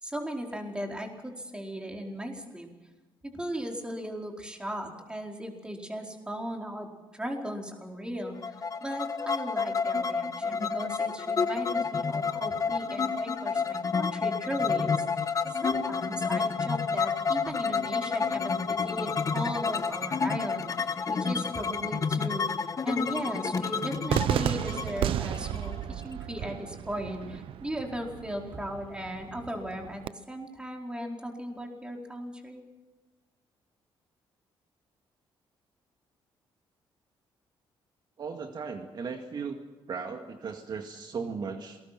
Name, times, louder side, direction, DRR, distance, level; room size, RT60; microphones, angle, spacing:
voice 1, 0.0-2.7 3.2-6.9 7.1-8.5 8.8-22.5 22.8-32.6, equal, 10° right, 1 dB, 4.6 m, -37 dB
sound 1, 8.4-26.1, left 5 dB, 35° left, 1.3 m, -30 dB
Cheering / Fireworks, 24.1-30.1, right 11 dB, 75° right, 0.6 m, -33 dB
voice 2, 38.2-39.6 39.9-41.8, right 5 dB, 50° right, 4 dB, 2.0 m, -36 dB
27.5 x 20.0 x 6.0 m, 1.2 s
cardioid pair, 105°, 9 cm